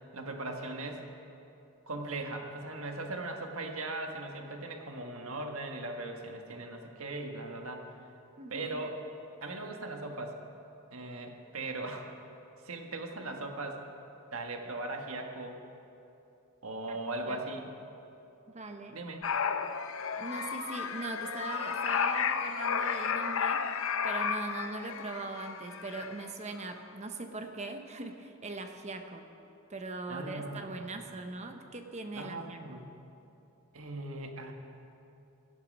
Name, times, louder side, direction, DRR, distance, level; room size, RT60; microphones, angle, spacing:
voice 1, 0.1-1.1 1.9-7.9 8.5-8.9 9.4-10.4 10.9-12.1 12.6-13.8 14.3-15.6 16.6-17.8 18.9-19.2 30.1-30.6 32.1-32.8 33.7-34.5, right 2 dB, 70° right, 3 dB, 1.5 m, -39 dB
voice 2, 8.4-8.8 16.9-17.0 17.3-17.4 18.5-19.0 20.2-23.7 24.0-29.3 29.7-32.8, right 3 dB, 30° right, 6 dB, 0.8 m, -40 dB
sound 1, 19.2-26.3 26.6-26.7, left 6 dB, 65° left, 0.6 m, -33 dB
17.0 x 12.5 x 5.4 m, 2.9 s
head